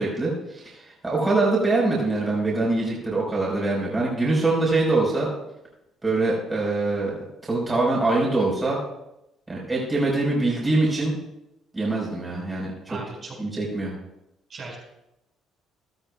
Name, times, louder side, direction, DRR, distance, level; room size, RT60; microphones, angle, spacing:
voice 1, 0.0-5.3 6.0-7.2 7.4-8.8 9.5-11.2 11.7-13.0 13.4-13.9, right 2 dB, 20° right, -4 dB, 4.4 m, -24 dB
voice 2, 12.9-13.4 14.5-14.8, right 3 dB, 45° right, -3 dB, 4.7 m, -37 dB
15.5 x 12.0 x 2.3 m, 0.87 s
cardioid pair, 95°, 0 cm